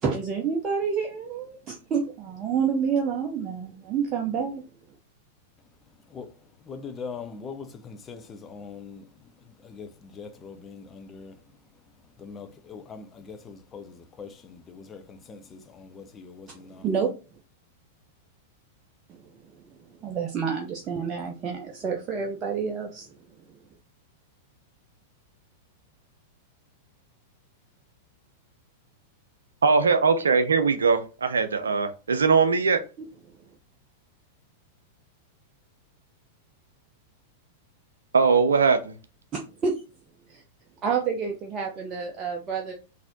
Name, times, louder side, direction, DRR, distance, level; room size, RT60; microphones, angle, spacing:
voice 1, 0.0-4.6 16.5-17.1 19.1-23.2 39.3-39.7 40.3-40.4 40.8-42.7, right 6 dB, 25° right, 0.7 m, -29 dB
voice 2, 6.1-11.4 12.2-16.9, left 5 dB, 20° left, 0.6 m, -42 dB
voice 3, 29.6-32.8 38.1-38.9, right 5 dB, 70° right, 0.5 m, -21 dB
4.0 x 2.7 x 3.9 m
figure-of-eight pair, 95°, 0 cm